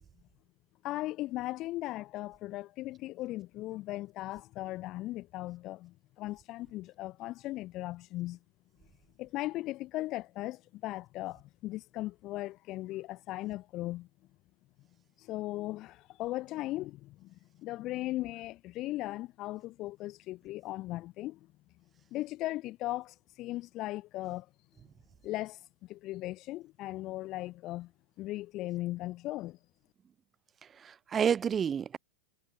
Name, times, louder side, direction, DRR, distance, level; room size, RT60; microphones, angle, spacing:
voice 1, 0.8-8.4 9.2-14.1 15.2-21.4 22.1-24.5 25.2-27.9 28.2-29.6, left 17 dB, 40° left, 1.1 m, -38 dB
voice 2, 30.6-32.0, right 7 dB, 25° right, 0.6 m, -30 dB
hypercardioid pair, 120°, 0 cm